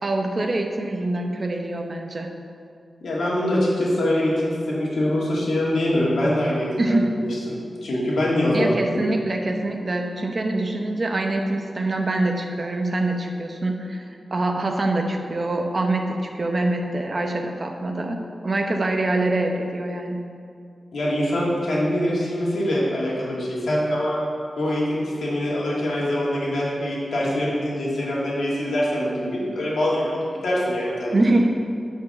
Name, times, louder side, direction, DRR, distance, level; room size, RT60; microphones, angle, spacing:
voice 1, 0.0-2.3 6.8-7.2 8.5-14.0 14.3-20.2 31.1-31.5, right 2 dB, 35° right, 3 dB, 0.8 m, -24 dB
voice 2, 3.0-8.8 20.9-24.2 24.6-31.2, left 1 dB, 80° left, -5 dB, 2.1 m, -24 dB
10.0 x 4.7 x 6.6 m, 2.3 s
wide cardioid pair, 165°, 0 cm